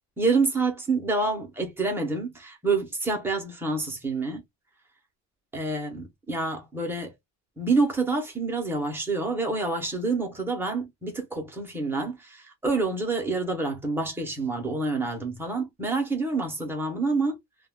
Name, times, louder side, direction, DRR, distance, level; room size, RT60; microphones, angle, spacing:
voice 1, 0.2-4.4 5.5-7.1 7.6-17.4, right 3 dB, 5° right, 0.4 m, -27 dB
2.1 x 2.0 x 3.2 m
cardioid pair, 175°, 40 cm